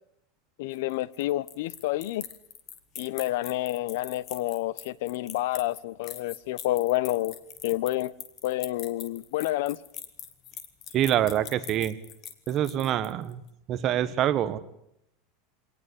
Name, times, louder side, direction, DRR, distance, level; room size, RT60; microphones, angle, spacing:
voice 1, 0.6-2.3 3.0-7.4 7.6-8.1 8.4-9.8, left 16 dB, 65° left, 0.9 m, -29 dB
sound 1, 0.7-13.3, left 10 dB, 30° left, 2.1 m, -43 dB
voice 2, 10.9-12.0 12.5-13.4 13.7-14.6, right 11 dB, 30° right, 1.4 m, -25 dB
24.5 x 19.0 x 8.5 m
supercardioid pair, 170°, 0 cm